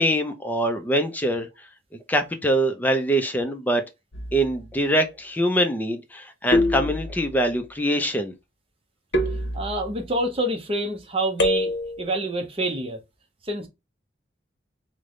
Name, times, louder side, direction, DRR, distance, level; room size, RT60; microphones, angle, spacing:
voice 1, 0.0-1.5 2.1-3.8 4.3-8.3, right 1 dB, 10° left, 0.4 m, -23 dB
sound 1, 4.1-4.7 6.5-7.4 9.1-10.1 11.4-12.1, left 1 dB, 65° left, 0.8 m, -25 dB
voice 2, 9.5-11.7 12.0-13.0 13.4-13.7, right 1 dB, 30° right, 0.7 m, -27 dB
3.2 x 2.1 x 3.7 m
head